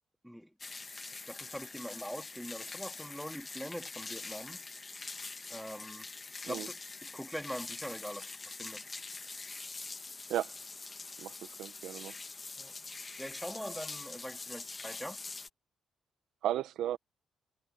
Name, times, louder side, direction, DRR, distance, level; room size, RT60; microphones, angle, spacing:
sound 1, 0.6-15.5, left 3 dB, 25° left, 1.4 m, -44 dB
voice 1, 1.1-4.7 5.5-6.1 6.4-8.8 12.6-12.7 13.2-15.2, equal, ahead, 3.2 m, -43 dB
voice 2, 11.2-12.1 16.4-17.0, right 12 dB, 80° right, 1.0 m, -35 dB
cardioid pair, 90°, 0 cm